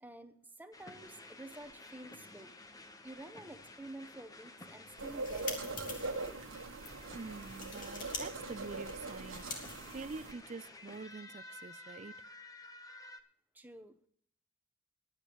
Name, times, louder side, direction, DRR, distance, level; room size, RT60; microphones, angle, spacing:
voice 1, 0.0-2.5 3.0-6.2 13.5-14.1, right 1 dB, 10° right, 1.0 m, -50 dB
sound 1, 0.7-13.2, left 2 dB, 20° left, 0.9 m, -53 dB
Tape Measure, 5.0-6.3 6.8-6.9 7.3-8.2 8.5-10.5, left 4 dB, 40° left, 2.5 m, -46 dB
sound 2, 5.0-10.3, right 3 dB, 80° right, 1.3 m, -42 dB
voice 2, 7.1-9.7 9.9-12.2, right 4 dB, 35° right, 0.4 m, -46 dB
21.5 x 9.1 x 3.0 m
head